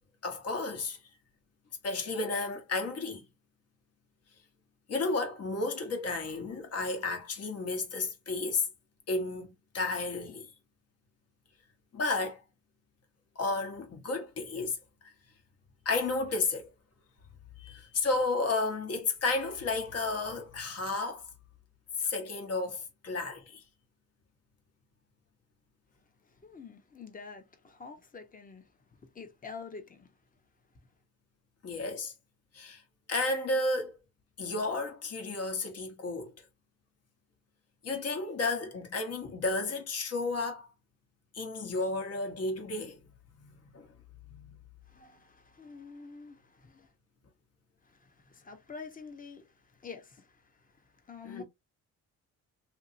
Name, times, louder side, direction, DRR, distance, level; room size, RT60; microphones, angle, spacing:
voice 1, 0.2-1.0 1.8-3.3 4.9-8.7 9.1-10.5 11.9-12.4 13.3-14.8 15.8-16.7 17.6-21.3 22.0-23.6 31.6-32.1 32.5-32.8 33.1-34.0 34.4-36.3 37.8-40.7 41.3-43.0 43.4-43.9 44.3-44.5 51.2-51.4, left 3 dB, 55° left, 1.2 m, -32 dB
voice 2, 26.3-30.1 44.9-46.9 47.8-51.4, left 5 dB, 25° left, 0.9 m, -48 dB
2.8 x 2.8 x 2.6 m
cardioid pair, 90°, 30 cm